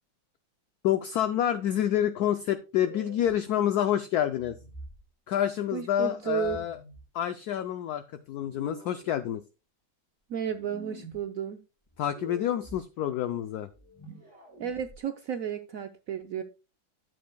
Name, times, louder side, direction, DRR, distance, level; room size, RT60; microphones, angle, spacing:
voice 1, 0.8-4.6 5.3-6.8 7.1-9.4 12.0-13.7, left 11 dB, 80° left, 10 dB, 0.8 m, -28 dB
sound 1, 2.7-3.3 4.4-5.0 6.4-7.0 8.4-9.1 10.4-11.2 11.9-12.8 13.7-15.0, equal, 10° left, 2.2 m, -46 dB
voice 2, 5.7-6.6 10.3-11.6 14.6-16.4, right 9 dB, 80° right, 7 dB, 0.7 m, -33 dB
11.0 x 7.4 x 2.2 m, 0.30 s
omnidirectional pair, 2.2 m